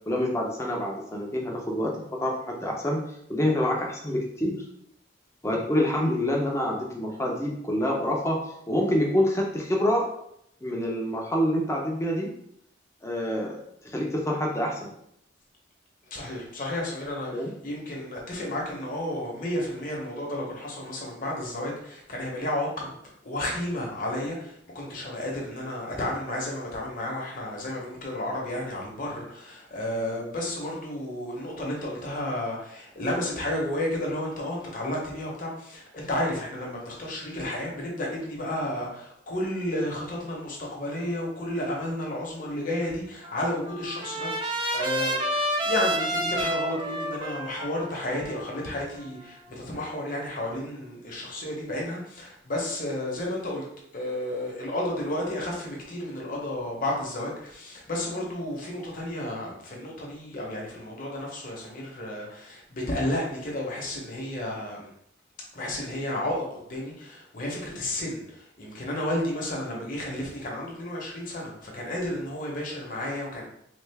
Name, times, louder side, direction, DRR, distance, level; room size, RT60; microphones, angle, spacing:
voice 1, 0.1-1.9 2.2-3.0 3.3-4.6 5.4-10.1 10.6-12.3 13.0-13.6 13.8-14.9 17.3-17.5, left 1 dB, 15° left, -1 dB, 0.6 m, -26 dB
voice 2, 16.1-23.0 23.2-53.6 53.9-64.9 65.5-73.5, left 1 dB, 45° left, -2 dB, 0.9 m, -32 dB
Trumpet, 43.2-49.4, right 1 dB, 25° right, 0.4 m, -30 dB
3.2 x 2.4 x 3.4 m, 0.73 s
head